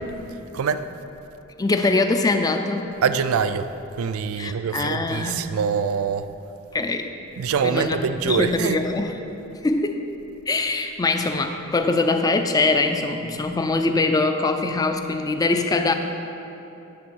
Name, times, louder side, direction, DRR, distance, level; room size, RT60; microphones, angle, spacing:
voice 1, 0.5-0.9 3.0-3.7 4.0-6.3 7.4-8.8, right 6 dB, 80° right, 0.4 m, -24 dB
voice 2, 1.6-2.9 4.4-5.5 6.7-7.1 7.6-9.1 9.6-10.0 10.5-15.9, left 3 dB, 20° left, 0.4 m, -23 dB
10.0 x 3.7 x 6.1 m
head